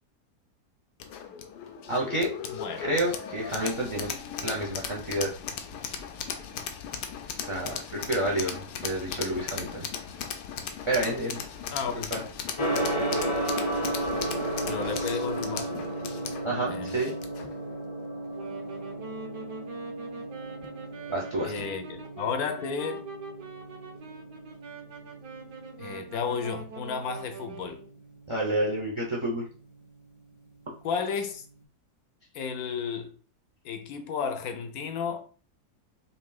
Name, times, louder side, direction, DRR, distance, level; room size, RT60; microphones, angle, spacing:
sound 1, 1.0-17.5, left 7 dB, 90° left, 1.2 m, -37 dB
voice 1, 1.9-2.3 2.8-4.1 4.4-5.3 7.4-9.9 10.9-11.4 12.1-12.2 14.8-15.1 16.4-17.2 21.1-21.6 28.3-29.4, right 1 dB, 25° right, 0.7 m, -29 dB
voice 2, 2.5-2.9 11.7-12.1 14.7-15.9 16.7-17.0 21.4-23.1 25.8-27.8 30.8-31.4 32.3-33.2 33.6-35.3, left 6 dB, 70° left, 1.1 m, -33 dB
Gong, 12.6-31.5, right 1 dB, 45° left, 0.3 m, -35 dB
Wind instrument woodwind instrument, 18.2-27.9, right 4 dB, 85° right, 1.7 m, -43 dB
5.5 x 3.1 x 2.3 m
omnidirectional pair, 1.8 m